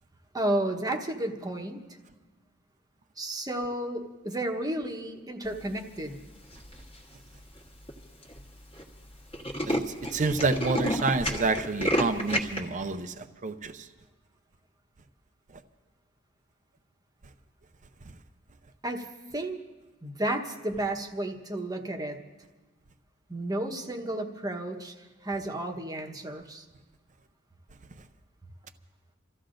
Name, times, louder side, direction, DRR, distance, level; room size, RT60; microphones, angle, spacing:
voice 1, 0.3-1.8 3.2-6.2 18.8-19.1 19.3-19.6 20.0-22.2 23.3-24.9 25.2-26.6, right 1 dB, 20° right, 3 dB, 1.0 m, -32 dB
Tools, 6.5-6.9 7.6-7.7 7.9-8.0 8.2-8.4 8.7-8.8 9.1-12.6, equal, 25° left, 1.4 m, -29 dB
voice 2, 10.1-13.9, right 3 dB, 35° right, 9 dB, 0.6 m, -28 dB
30.0 x 14.5 x 2.6 m, 1.2 s
head